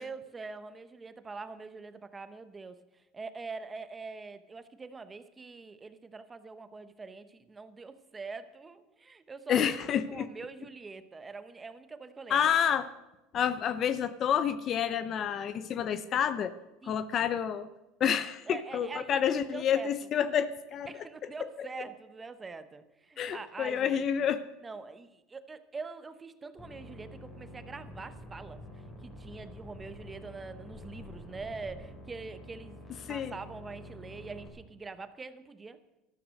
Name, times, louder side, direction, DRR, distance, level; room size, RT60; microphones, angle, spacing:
voice 1, 0.0-9.8 10.1-12.4 16.8-17.0 18.5-19.9 20.9-24.2 24.6-28.6 29.0-32.8 33.1-35.8, right 4 dB, 15° right, 11 dB, 0.9 m, -44 dB
voice 2, 9.5-10.3 12.3-12.9 13.3-16.5 16.8-17.7 18.0-20.9 21.6-21.7 23.2-24.4 33.1-33.3, left 8 dB, 40° left, 14 dB, 0.6 m, -29 dB
sound 1, 26.6-34.5, left 1 dB, 20° left, 5.0 m, -48 dB
13.0 x 12.5 x 6.4 m, 1.0 s
supercardioid pair, 125°, 0 cm